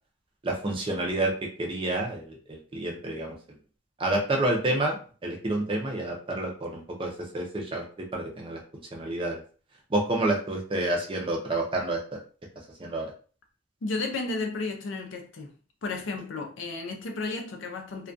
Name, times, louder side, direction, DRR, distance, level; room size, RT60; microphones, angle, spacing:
voice 1, 0.4-1.3 1.6-3.3 4.0-5.0 5.2-7.8 8.1-8.6 8.9-9.4 9.9-12.2 12.8-13.1, right 2 dB, 25° right, 0.4 m, -29 dB
voice 2, 13.8-15.5 15.8-18.1, left 3 dB, 75° left, 0.5 m, -33 dB
2.3 x 2.2 x 2.5 m
head